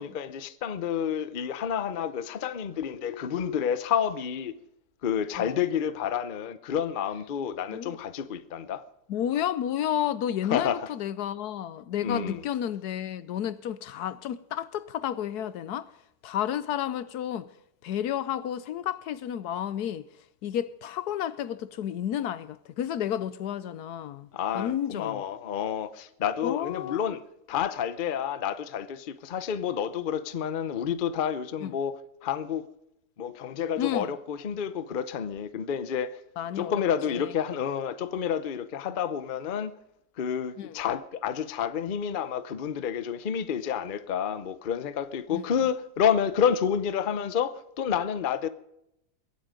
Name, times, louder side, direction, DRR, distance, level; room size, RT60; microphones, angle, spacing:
voice 1, 0.0-4.5 5.0-8.8 10.5-10.9 12.0-12.4 24.3-27.2 27.5-32.7 33.2-36.2 36.6-39.7 40.2-48.5, left 8 dB, 45° left, 0.7 m, -29 dB
voice 2, 9.1-15.9 16.2-17.5 17.8-20.0 20.4-24.3 24.5-25.2 26.4-27.2 31.6-31.7 33.8-34.1 36.4-36.7 37.1-37.3 40.6-40.8 45.3-45.4, left 10 dB, 75° left, 1.2 m, -31 dB
23.0 x 8.5 x 5.2 m
omnidirectional pair, 1.7 m